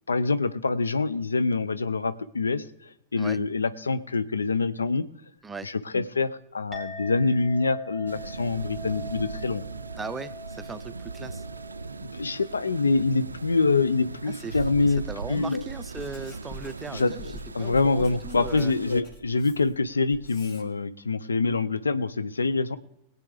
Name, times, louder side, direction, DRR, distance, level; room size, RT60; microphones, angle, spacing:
voice 1, 0.1-2.6 3.1-5.1 5.9-9.6 12.1-15.6 16.9-17.1 17.5-22.8, left 3 dB, 75° left, 14 dB, 0.5 m, -25 dB
Chink clink, 6.7-15.4, equal, 20° left, 2.7 m, -45 dB
sound 1, 8.1-19.0, right 4 dB, 75° right, 0.4 m, -39 dB
voice 2, 10.0-11.4 14.3-18.7, right 4 dB, 15° right, 12 dB, 0.5 m, -39 dB
Writing, 15.9-20.7, left 1 dB, 40° left, 2.4 m, -44 dB
22.5 x 8.2 x 3.4 m, 0.80 s
figure-of-eight pair, 90°, 0 cm